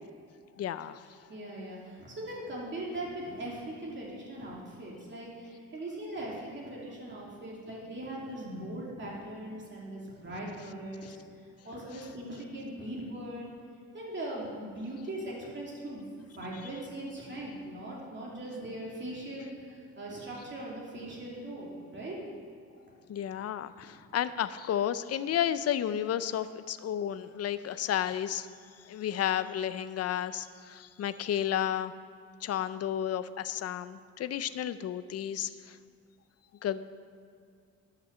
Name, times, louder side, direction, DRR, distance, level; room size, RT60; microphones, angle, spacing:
voice 1, 0.6-1.0 11.0-11.2 23.1-28.5 28.8-31.9 32.4-35.8 36.6-36.8, left 10 dB, 55° left, 14 dB, 0.6 m, -32 dB
voice 2, 1.3-11.2 11.6-13.5 13.9-16.0 16.3-22.2, right 1 dB, 40° right, -4 dB, 2.7 m, -40 dB
11.5 x 5.9 x 7.0 m, 2.3 s
cardioid pair, 90°, 30 cm